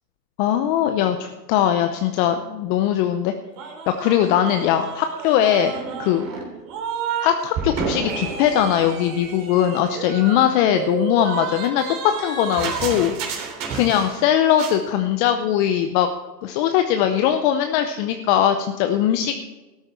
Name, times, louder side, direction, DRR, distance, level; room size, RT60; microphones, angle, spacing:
voice 1, 0.4-3.3 4.0-5.7 6.0-6.3 7.2-11.8 12.2-13.2 13.7-16.1 16.4-19.3, left 10 dB, 30° left, 7 dB, 0.7 m, -20 dB
sound 1, 3.6-7.3 7.5-14.2 14.5-14.8, right 6 dB, 35° right, 3.4 m, -30 dB
13.0 x 12.5 x 4.5 m, 1.2 s
hypercardioid pair, 130°, 49 cm